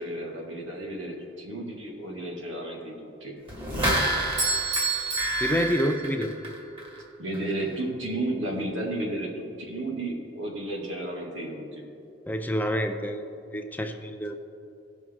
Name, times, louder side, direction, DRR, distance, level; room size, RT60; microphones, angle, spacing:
voice 1, 0.0-3.3 7.2-11.8, right 1 dB, 90° right, -1 dB, 2.0 m, -33 dB
sound 1, 3.5-7.0 7.3-7.4, right 1 dB, 30° right, 1.9 m, -29 dB
Bell / Doorbell, 4.4-6.5, right 4 dB, 60° right, 2.1 m, -30 dB
voice 2, 5.4-6.3 12.3-14.3, equal, 10° left, 6 dB, 0.5 m, -28 dB
17.5 x 6.1 x 3.7 m, 2.7 s
head